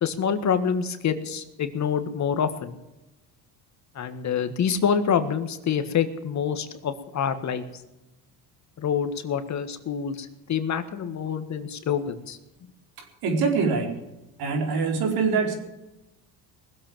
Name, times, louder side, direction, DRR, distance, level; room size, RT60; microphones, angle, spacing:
voice 1, 0.0-2.7 3.9-7.6 8.8-12.4, left 7 dB, 45° left, 9 dB, 1.7 m, -26 dB
voice 2, 13.2-13.9 14.4-15.6, right 4 dB, 65° right, 3 dB, 4.5 m, -24 dB
19.5 x 8.0 x 8.9 m, 0.97 s
cardioid pair, 100°, 39 cm